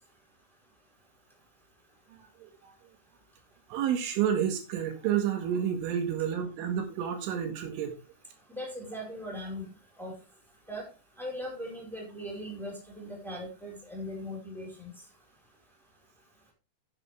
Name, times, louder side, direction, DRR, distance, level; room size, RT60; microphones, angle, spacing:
voice 1, 2.4-2.8 3.7-8.0, right 9 dB, 80° right, 5 dB, 4.4 m, -30 dB
voice 2, 8.5-9.7 10.0-10.2 10.7-10.9 11.2-14.9, equal, ahead, -1 dB, 4.2 m, -39 dB
11.0 x 9.5 x 3.4 m, 0.28 s
omnidirectional pair, 5.6 m